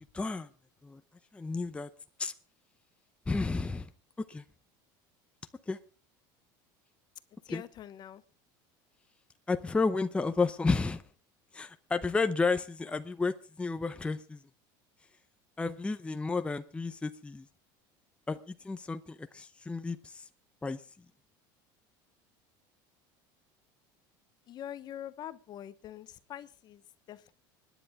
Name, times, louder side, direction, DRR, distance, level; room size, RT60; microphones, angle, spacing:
voice 1, 0.1-0.5 0.8-1.0 1.3-1.9 2.2-2.3 3.3-3.9 4.3-4.4 5.7-5.8 7.5-7.6 9.5-11.0 11.5-14.4 15.6-17.4 18.3-18.4 18.6-20.2 20.6-20.8, left 4 dB, 10° left, 0.7 m, -31 dB
voice 2, 7.4-8.2 24.5-27.3, left 11 dB, 40° left, 0.9 m, -44 dB
25.5 x 10.0 x 3.5 m
supercardioid pair, 125°, 11 cm